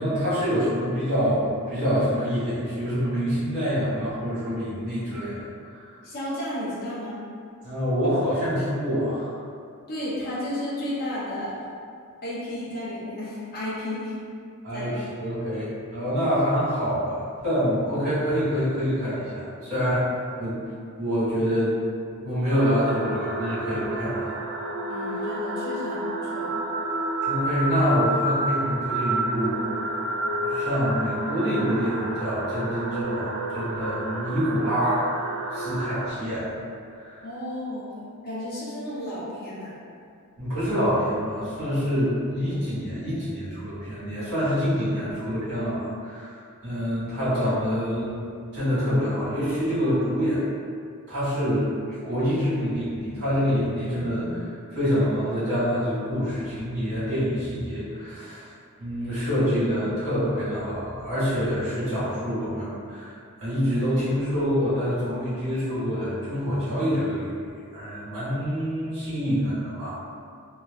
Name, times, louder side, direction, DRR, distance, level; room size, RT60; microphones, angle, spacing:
voice 1, 0.0-5.3 5.7-5.9 7.6-9.4 14.6-20.1 20.4-20.6 21.0-21.8 22.1-24.2 27.2-29.8 30.3-35.1 35.5-36.5 36.9-37.2 40.4-46.3 46.6-48.2 48.5-50.4 51.1-58.5 58.8-63.1 63.4-67.2 67.7-69.9, equal, 85° right, -11 dB, 1.5 m, -26 dB
voice 2, 6.0-7.2 9.9-11.5 12.2-14.2 14.7-14.9 24.9-26.6 37.2-37.9 38.2-39.7, left 1 dB, 45° left, -8 dB, 0.7 m, -33 dB
sound 1, 22.5-36.1, right 1 dB, 45° right, 0.3 m, -30 dB
3.0 x 2.3 x 2.3 m, 2.3 s
head